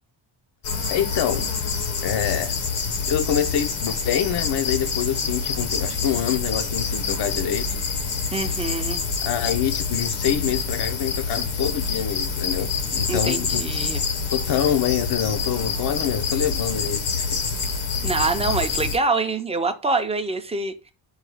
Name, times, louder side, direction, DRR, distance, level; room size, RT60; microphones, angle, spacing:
sound 1, 0.6-19.0, left 5 dB, 90° left, 1.2 m, -26 dB
voice 1, 0.9-1.5 2.0-2.5 3.1-7.8 9.2-13.6 14.3-17.4, left 10 dB, 60° left, 0.6 m, -26 dB
voice 2, 8.3-9.0 13.1-14.0 18.0-20.9, right 3 dB, 15° right, 0.5 m, -25 dB
4.8 x 2.3 x 4.8 m
wide cardioid pair, 140°, 46 cm